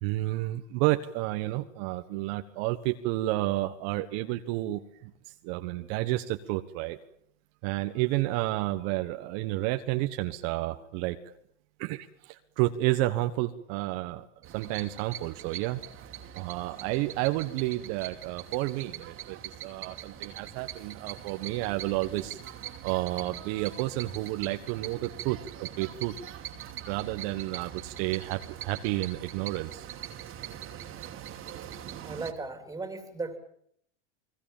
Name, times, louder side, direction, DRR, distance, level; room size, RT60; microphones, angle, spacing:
voice 1, 0.0-5.1 5.4-7.0 7.6-11.2 11.8-14.2 14.5-15.8 16.3-22.4 22.8-26.1 26.9-29.9, right 17 dB, 55° right, 7 dB, 1.5 m, -31 dB
sound 1, 14.4-32.3, right 10 dB, 35° right, 2.6 m, -42 dB
voice 2, 32.0-33.4, right 3 dB, 10° right, 8 dB, 3.3 m, -36 dB
29.5 x 20.5 x 7.4 m, 0.67 s
supercardioid pair, 125°, 36 cm